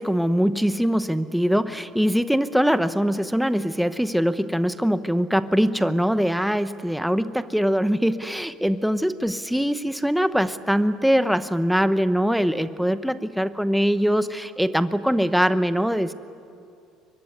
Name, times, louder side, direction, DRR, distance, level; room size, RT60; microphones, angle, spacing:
voice 1, 0.0-16.1, equal, ahead, 12 dB, 0.8 m, -22 dB
23.0 x 23.0 x 9.7 m, 2.5 s
cardioid pair, 120°, 0 cm